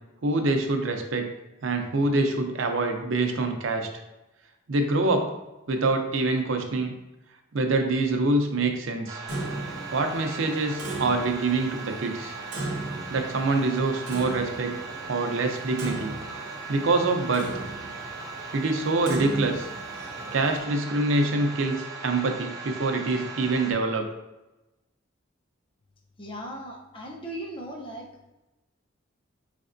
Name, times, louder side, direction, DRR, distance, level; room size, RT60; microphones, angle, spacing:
voice 1, 0.2-1.3 1.6-3.9 4.7-5.3 5.7-6.9 7.5-9.2 9.9-12.3 13.1-14.8 15.1-16.2 16.7-17.6 18.5-19.7 20.3-21.8 22.0-24.1, right 2 dB, 80° right, 5 dB, 0.6 m, -25 dB
sound 1, 9.1-23.7, right 4 dB, 20° right, 0.4 m, -39 dB
Clock, 9.3-20.6, right 2 dB, 60° right, 1.0 m, -37 dB
voice 2, 26.2-28.3, right 1 dB, 25° left, -1 dB, 0.6 m, -38 dB
4.9 x 3.3 x 2.6 m, 1.0 s
head